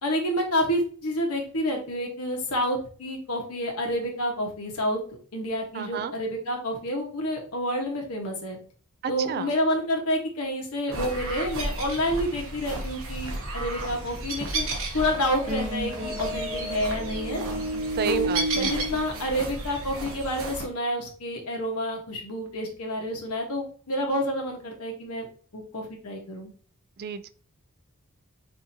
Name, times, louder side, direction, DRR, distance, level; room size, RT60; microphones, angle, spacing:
voice 1, 0.0-5.0 5.3-8.6 9.1-17.4 18.0-25.3 25.5-26.5, equal, 80° left, 1 dB, 1.2 m, -29 dB
voice 2, 5.8-6.1 9.0-9.5 18.0-18.7 27.0-27.3, right 6 dB, 45° right, 13 dB, 0.3 m, -31 dB
sound 1, 10.9-20.7, right 2 dB, 65° right, 1.1 m, -33 dB
sound 2, 15.0-20.2, equal, 30° right, 1.0 m, -33 dB
5.7 x 2.8 x 2.8 m, 0.43 s
head